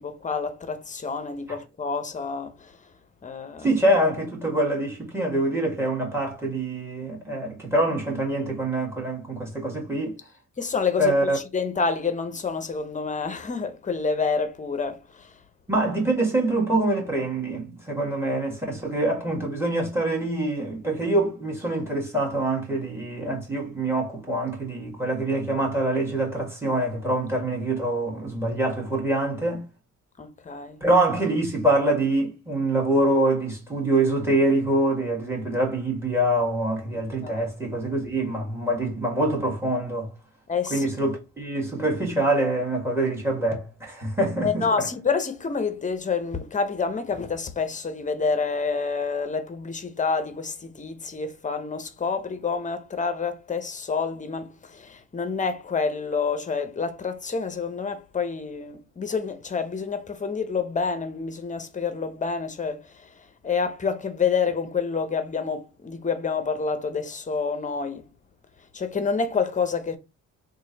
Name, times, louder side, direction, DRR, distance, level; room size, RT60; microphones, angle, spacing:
voice 1, 0.0-2.8 3.2-3.7 10.6-15.3 18.0-18.1 30.2-30.8 37.2-37.5 40.5-40.9 44.4-68.1 68.7-70.0, left 5 dB, 25° left, 0.7 m, -28 dB
voice 2, 3.6-10.1 11.0-11.4 15.7-29.6 30.8-40.1 40.7-44.9, right 1 dB, 10° right, 1.6 m, -25 dB
3.0 x 2.5 x 4.0 m
cardioid pair, 90°, 30 cm